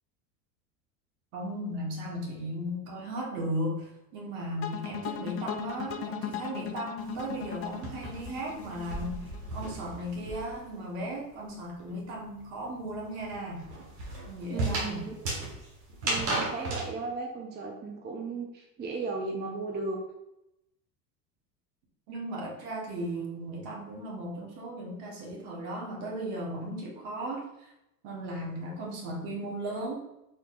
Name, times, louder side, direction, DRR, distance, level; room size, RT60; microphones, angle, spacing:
voice 1, 1.3-13.6 14.3-15.0 22.1-27.5 28.0-30.0, right 1 dB, 60° right, -2 dB, 1.5 m, -36 dB
sound 1, 4.6-9.7, left 9 dB, 30° left, 0.4 m, -38 dB
sound 2, 7.0-10.7 11.0-16.9, right 2 dB, 90° right, 1.4 m, -35 dB
voice 2, 14.5-15.2 16.0-20.0, right 3 dB, 20° right, 1 dB, 0.6 m, -35 dB
4.7 x 3.4 x 2.4 m, 0.88 s
hypercardioid pair, 90°, 49 cm